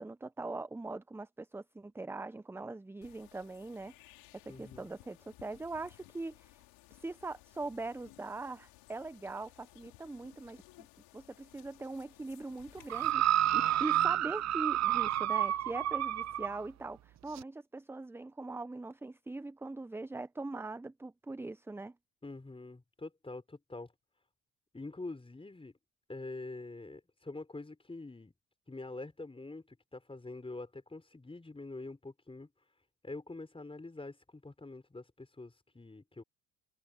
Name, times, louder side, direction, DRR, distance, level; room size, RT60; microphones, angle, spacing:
voice 1, 0.0-4.2 4.4-6.6 6.9-10.6 11.1-21.9, right 2 dB, 5° right, 0.6 m, -41 dB
sound 1, 3.0-13.1, left 21 dB, 75° left, 5.3 m, -59 dB
voice 2, 4.5-4.9 22.2-23.9 24.7-25.7 26.1-28.3 28.7-32.5 33.0-36.2, left 2 dB, 15° left, 4.8 m, -45 dB
sound 2, 12.9-16.6 17.4-17.5, right 12 dB, 45° right, 0.8 m, -29 dB
hypercardioid pair, 70°, 36 cm